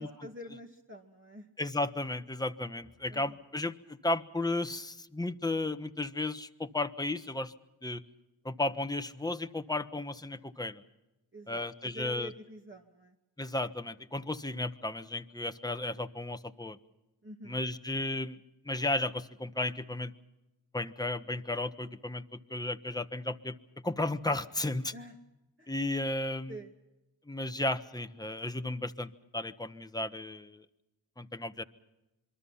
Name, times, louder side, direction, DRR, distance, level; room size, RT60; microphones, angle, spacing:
voice 1, 0.0-1.5 3.1-3.4 11.3-13.2 17.2-17.6 24.9-25.2 25.6-25.7 26.5-26.7, equal, 25° right, 0 dB, 2.1 m, -47 dB
voice 2, 1.6-7.5 7.8-8.0 8.4-10.8 11.5-12.3 13.4-16.8 17.4-18.4 18.6-20.1 20.7-23.5 23.8-24.9 25.7-26.6 27.3-30.6 31.2-31.6, left 2 dB, 10° left, 9 dB, 1.2 m, -34 dB
27.0 x 22.5 x 5.7 m, 0.98 s
cardioid pair, 50°, 44 cm